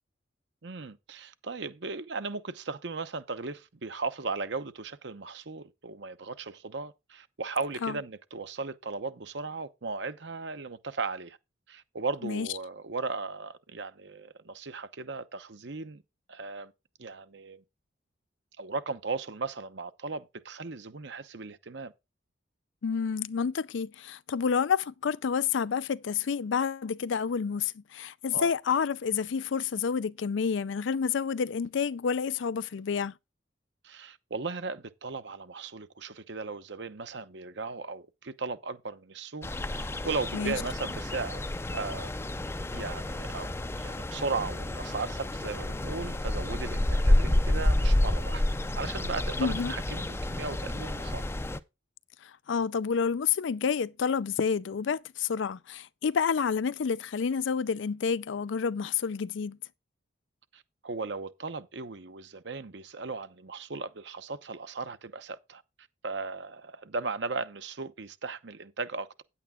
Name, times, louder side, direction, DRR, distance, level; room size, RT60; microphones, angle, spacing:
voice 1, 0.6-11.4 11.7-16.0 16.3-16.7 17.0-17.6 18.6-21.9 28.3-28.5 33.8-41.4 41.7-42.3 42.7-43.5 43.8-48.4 48.8-51.2 60.5-65.6 66.0-69.2, right 4 dB, 65° right, 0.9 m, -37 dB
voice 2, 22.8-33.1 40.3-40.6 49.4-49.7 52.2-59.6, left 6 dB, 80° left, 0.4 m, -29 dB
sound 1, 39.4-51.6, left 1 dB, 15° left, 0.4 m, -29 dB
9.6 x 8.5 x 3.7 m
head